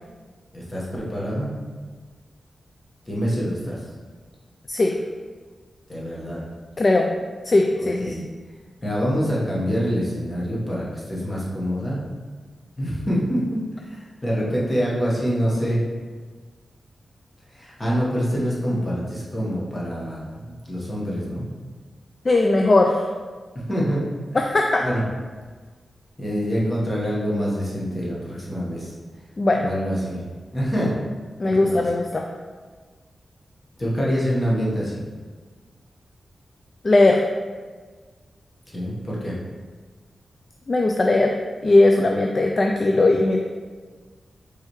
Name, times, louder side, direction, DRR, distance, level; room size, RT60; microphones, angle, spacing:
voice 1, 0.5-1.5 3.1-3.8 5.9-6.5 8.0-8.2 8.8-12.0 12.8-15.8 17.5-21.5 23.7-24.0 24.8-25.0 26.2-28.9 29.6-30.2 30.5-30.9 31.4-31.8 33.8-35.0 38.7-39.4, equal, 25° left, -6 dB, 1.3 m, -25 dB
voice 2, 6.8-7.1 7.5-8.2 22.3-23.0 24.3-24.9 29.4-29.7 31.4-32.3 36.8-37.2 40.7-41.3 41.6-43.4, left 2 dB, 40° left, 2 dB, 0.3 m, -18 dB
4.8 x 3.3 x 3.1 m, 1.4 s
cardioid pair, 75°, 0 cm